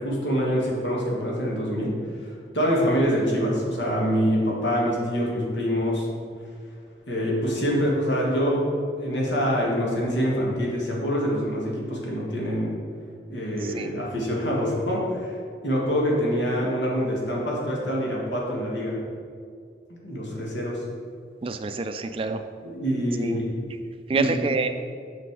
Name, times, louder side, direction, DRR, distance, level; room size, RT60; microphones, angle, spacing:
voice 1, 0.0-6.1 7.1-12.7 13.3-15.3 15.6-19.0 20.0-20.8 22.7-23.5 24.1-24.3, equal, 85° left, -3 dB, 1.8 m, -25 dB
voice 2, 13.6-13.9 21.4-22.4 23.2-23.4 24.1-24.7, right 3 dB, 30° right, 8 dB, 0.3 m, -27 dB
6.1 x 5.8 x 4.7 m, 2.2 s
head